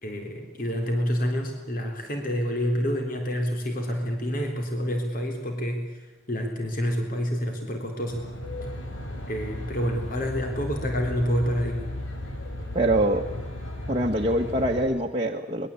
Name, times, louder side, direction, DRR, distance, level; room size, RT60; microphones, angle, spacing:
voice 1, 0.0-8.2 9.3-11.9, equal, 45° left, 3 dB, 3.8 m, -28 dB
Aircraft, 8.1-14.8, left 1 dB, 85° left, 4.6 m, -35 dB
voice 2, 12.7-13.3 13.9-15.7, right 1 dB, 30° right, 1 dB, 1.4 m, -24 dB
24.5 x 21.5 x 8.5 m, 1.1 s
head